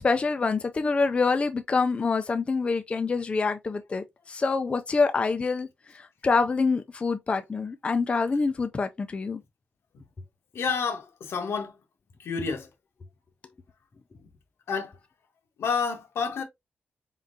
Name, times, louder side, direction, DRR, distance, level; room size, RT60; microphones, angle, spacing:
voice 1, 0.0-5.7 5.9-9.4, left 4 dB, 30° left, 0.4 m, -26 dB
voice 2, 10.5-11.8 12.2-12.7 14.7-15.0 15.6-16.4, left 5 dB, 80° left, 1.1 m, -29 dB
4.4 x 3.7 x 2.6 m
wide cardioid pair, 150°, 4 cm